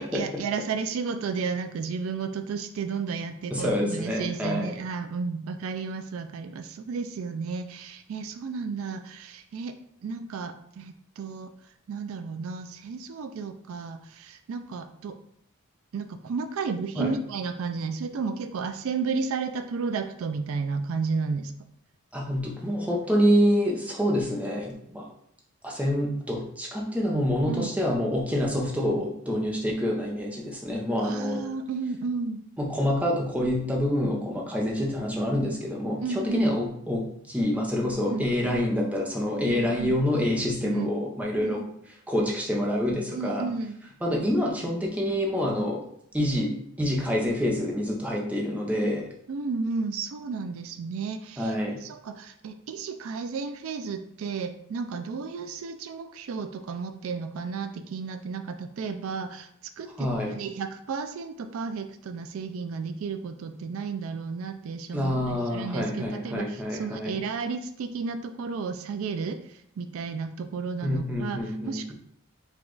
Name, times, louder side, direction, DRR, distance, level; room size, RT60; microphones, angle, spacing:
voice 1, 0.0-9.7 10.0-11.5 11.9-15.2 15.9-21.5 27.5-27.7 31.0-32.4 36.0-36.5 38.0-38.3 39.4-40.0 40.6-40.9 41.4-41.7 43.1-43.8 49.3-59.5 59.8-71.9, right 5 dB, 75° right, 9 dB, 0.3 m, -33 dB
voice 2, 3.5-4.7 17.0-17.1 22.1-25.1 25.6-31.4 32.6-41.7 42.1-43.5 44.0-45.8 46.1-46.5 46.8-49.0 51.4-51.8 60.0-60.3 64.9-67.2 70.8-71.9, equal, 5° right, -2 dB, 0.6 m, -27 dB
4.8 x 2.4 x 3.8 m, 0.69 s
head